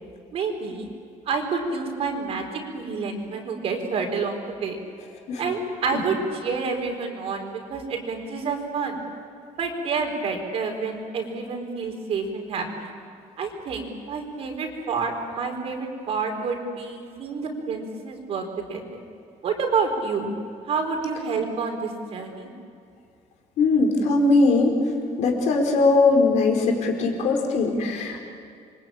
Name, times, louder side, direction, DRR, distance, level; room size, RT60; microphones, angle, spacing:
voice 1, 0.3-0.9 1.3-4.8 5.4-9.0 9.6-12.9 13.4-19.0 19.4-20.3 20.7-22.5, right 4 dB, 50° right, 3 dB, 4.6 m, -28 dB
voice 2, 23.6-24.8 25.2-28.2, left 3 dB, 60° left, 2 dB, 4.8 m, -20 dB
27.5 x 24.0 x 8.9 m, 2.4 s
cardioid pair, 170°, 13 cm